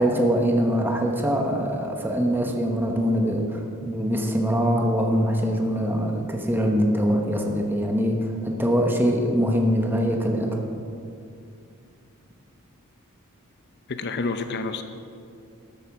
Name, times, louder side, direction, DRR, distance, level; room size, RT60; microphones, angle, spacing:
voice 1, 0.0-10.6, equal, 10° right, 1 dB, 1.1 m, -23 dB
voice 2, 13.9-14.8, left 3 dB, 50° left, 8 dB, 0.7 m, -28 dB
13.5 x 11.0 x 4.8 m, 2.5 s
head